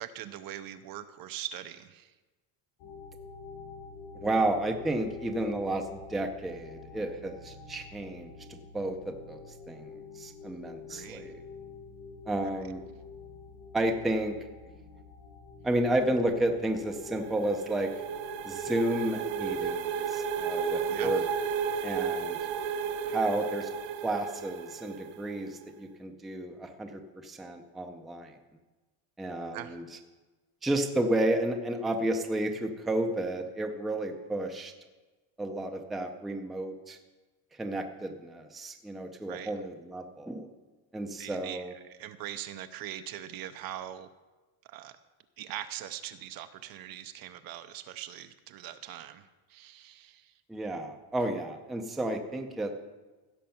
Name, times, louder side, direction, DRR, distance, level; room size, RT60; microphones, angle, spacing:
voice 1, 0.0-2.1 10.9-11.3 12.4-12.5 20.9-21.3 29.5-29.8 39.3-39.5 41.2-44.1 44.6-45.0 45.4-50.3, right 11 dB, 45° right, 11 dB, 0.6 m, -42 dB
sound 1, 2.8-19.7, left 4 dB, 75° left, 5.0 m, -47 dB
voice 2, 4.1-11.4 12.3-12.8 13.7-14.4 15.6-17.9 18.4-21.2 21.8-22.4 23.1-23.7 24.0-28.4 29.2-29.8 30.6-34.7 35.4-37.0 37.6-40.5 40.9-41.7 50.5-52.7, right 1 dB, ahead, 4 dB, 0.5 m, -32 dB
sound 2, 16.7-25.4, right 6 dB, 85° right, 1.1 m, -33 dB
16.0 x 6.5 x 5.7 m, 1.2 s
cardioid pair, 165°, 50 cm